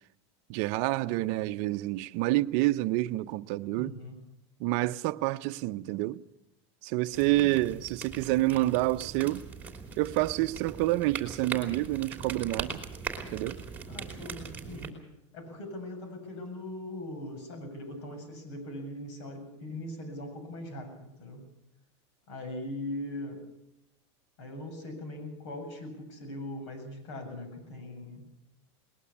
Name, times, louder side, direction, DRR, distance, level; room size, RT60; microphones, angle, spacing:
voice 1, 0.5-3.9 4.6-6.2 6.8-9.4 10.0-12.8 13.3-13.6, right 18 dB, 50° right, 0.7 m, -28 dB
voice 2, 3.8-4.2 7.3-7.7 13.9-15.0 15.3-21.4 22.3-23.5 24.4-28.3, left 1 dB, 75° left, 7.8 m, -40 dB
sound 1, 7.1-14.9, right 5 dB, 10° right, 3.0 m, -40 dB
20.5 x 20.0 x 7.1 m
supercardioid pair, 150°, 15 cm